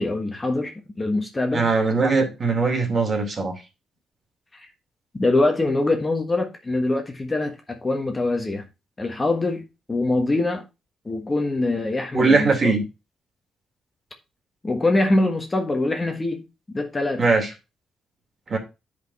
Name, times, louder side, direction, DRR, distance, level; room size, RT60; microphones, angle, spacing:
voice 1, 0.0-1.7 4.5-4.7 5.1-8.6 9.0-9.6 9.9-10.6 11.0-12.7 14.6-16.4 16.7-17.3, left 2 dB, 20° left, 1.4 m, -23 dB
voice 2, 1.5-3.5 12.1-12.8 17.2-17.5 18.5-18.6, right 4 dB, 35° right, 2.7 m, -20 dB
9.3 x 5.2 x 4.1 m
cardioid pair, 110°, 0 cm